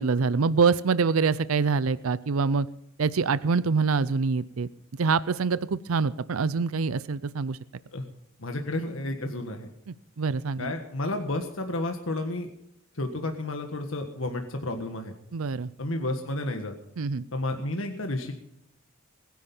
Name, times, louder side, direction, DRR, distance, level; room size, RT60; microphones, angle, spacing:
voice 1, 0.0-2.7 3.0-7.6 10.2-10.7 15.3-15.7 17.0-17.2, right 5 dB, 80° right, 17 dB, 0.5 m, -25 dB
voice 2, 8.4-9.7 10.6-12.5 12.9-15.1 15.8-16.7 17.3-18.3, left 2 dB, 70° left, 4 dB, 1.6 m, -31 dB
21.0 x 10.5 x 5.5 m, 0.77 s
head